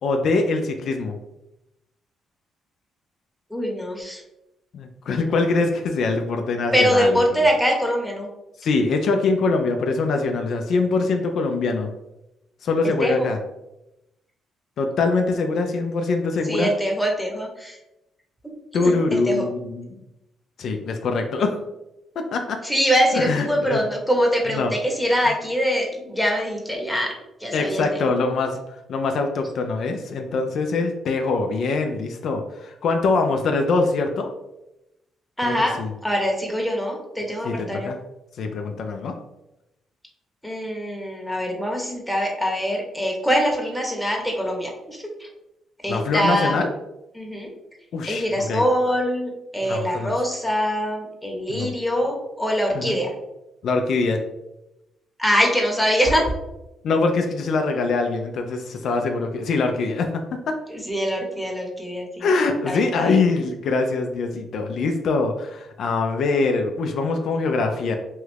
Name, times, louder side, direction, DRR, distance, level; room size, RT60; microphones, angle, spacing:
voice 1, 0.0-1.2 4.7-7.4 8.6-11.9 12.6-13.4 14.8-16.7 18.7-20.0 20.6-21.6 22.2-22.6 23.1-23.8 24.5-24.7 27.5-28.6 28.9-34.3 35.4-35.9 37.4-38.0 38.4-39.2 45.9-46.7 47.9-48.6 49.6-50.2 51.5-51.7 52.7-52.9 53.6-54.2 56.8-60.6 62.2-68.0, left 3 dB, 65° left, 4 dB, 0.3 m, -23 dB
voice 2, 3.5-4.2 6.7-8.3 13.0-13.3 16.4-17.8 18.8-19.4 22.6-28.0 35.4-37.9 40.4-45.3 45.8-46.6 47.1-47.5 48.1-53.1 55.2-56.3 60.7-62.3 62.7-63.2, equal, 5° left, 0 dB, 0.8 m, -23 dB
3.1 x 2.4 x 3.2 m, 0.92 s
cardioid pair, 90°, 0 cm